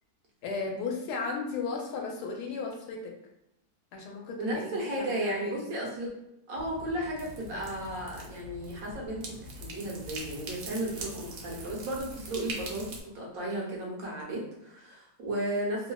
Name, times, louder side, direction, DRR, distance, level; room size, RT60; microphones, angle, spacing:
voice 1, 0.4-3.2 3.9-5.6, left 4 dB, 85° left, 1 dB, 1.2 m, -35 dB
voice 2, 4.4-6.1 6.5-15.9, right 1 dB, 70° right, -3 dB, 1.3 m, -34 dB
sound 1, 6.6-13.0, right 2 dB, 85° right, 1.1 m, -42 dB
3.1 x 2.1 x 2.2 m, 0.84 s
omnidirectional pair, 1.7 m